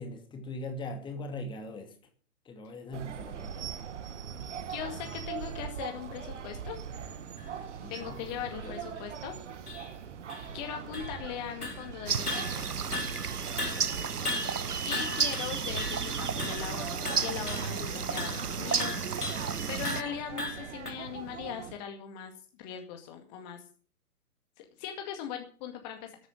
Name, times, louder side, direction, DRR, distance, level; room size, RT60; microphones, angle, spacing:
voice 1, 0.0-1.9 2.5-3.7 7.7-8.2 8.6-8.7 13.7-14.2, left 1 dB, 10° left, 4 dB, 2.5 m, -41 dB
sound 1, 2.9-21.8, right 8 dB, 50° right, 1.8 m, -42 dB
voice 2, 4.7-6.8 7.9-9.4 10.5-12.7 14.9-18.9 19.7-23.6 24.6-26.2, left 9 dB, 30° left, 4 dB, 2.1 m, -40 dB
sound 2, 7.4-7.5 7.9-8.0 8.6-8.7 9.0-9.1 9.7-9.9 10.3-11.4 11.6-11.9 12.3-13.3 13.6-16.1 16.4-16.7 17.0-17.7 18.2-18.5 18.8-19.5 19.8-20.9, left 2 dB, 80° left, 3.0 m, -37 dB
sound 3, 12.1-20.0, right 6 dB, 80° right, 0.9 m, -33 dB
13.5 x 9.5 x 7.0 m, 0.42 s
figure-of-eight pair, 120°, 45 cm